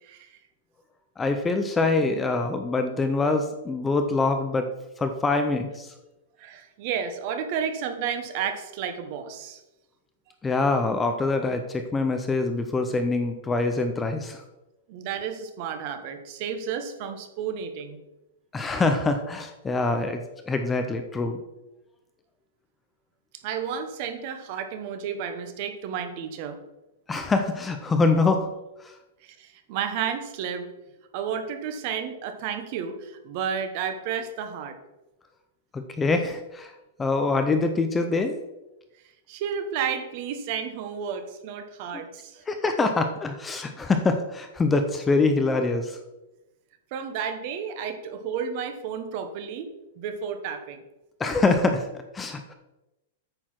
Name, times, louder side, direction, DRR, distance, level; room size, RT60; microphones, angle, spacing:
voice 1, 0.0-0.4 6.4-9.6 14.9-18.0 23.4-26.6 29.2-30.7 31.1-34.8 39.3-42.4 46.9-49.7 50.0-50.8, right 7 dB, 35° right, 8 dB, 0.9 m, -32 dB
voice 2, 1.2-4.7 5.0-5.9 10.4-14.4 18.5-21.4 27.1-28.5 28.8-28.9 35.7-36.7 37.0-38.4 41.9-42.0 42.5-46.0 51.2-51.9 52.1-52.5, left 3 dB, 10° left, 6 dB, 0.4 m, -24 dB
8.9 x 4.6 x 5.8 m, 0.99 s
supercardioid pair, 170°, 0 cm